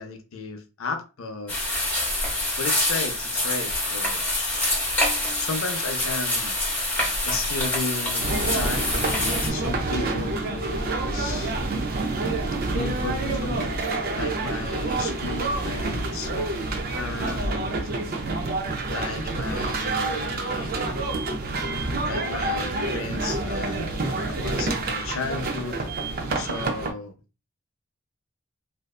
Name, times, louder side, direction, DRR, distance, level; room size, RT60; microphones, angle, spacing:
voice 1, 0.0-1.6 2.6-4.7 5.4-6.6 7.2-11.6 12.7-13.7 14.2-16.3 16.9-17.9 18.9-20.7 22.0-25.8 26.4-27.1, left 4 dB, 75° left, 0.5 m, -34 dB
sound 1, 1.5-9.5, left 1 dB, 10° left, 0.7 m, -26 dB
sound 2, 8.2-26.9, right 2 dB, 45° right, 0.4 m, -28 dB
2.6 x 2.2 x 2.3 m
head